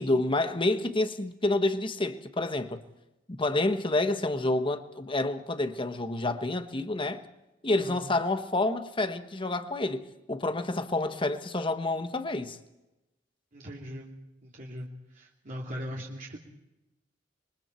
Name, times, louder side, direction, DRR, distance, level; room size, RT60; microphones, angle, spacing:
voice 1, 0.0-2.8 3.3-7.2 7.6-12.6, left 2 dB, 30° left, 1.3 m, -28 dB
voice 2, 13.5-14.1 14.4-16.4, equal, 45° right, 2.8 m, -40 dB
27.0 x 23.0 x 4.6 m
head